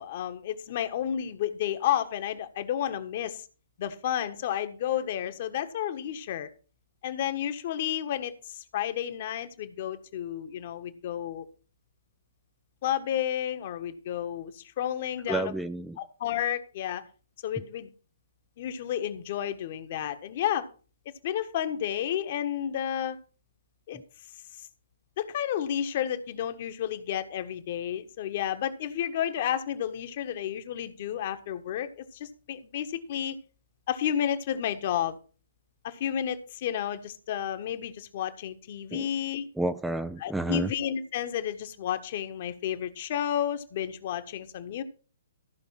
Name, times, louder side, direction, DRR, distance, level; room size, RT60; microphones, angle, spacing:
voice 1, 0.0-3.4 3.8-6.5 7.0-11.4 12.8-15.5 16.0-17.0 17.4-17.9 18.6-20.7 21.2-23.2 23.9-24.0 25.2-33.3 33.9-35.2 35.8-39.4 40.2-44.8, left 10 dB, 45° left, 9 dB, 1.5 m, -31 dB
voice 2, 15.3-16.0 38.9-39.1 39.6-40.7, right 1 dB, 5° right, 10 dB, 0.5 m, -30 dB
14.5 x 5.6 x 5.9 m, 0.37 s
figure-of-eight pair, 125°, 0 cm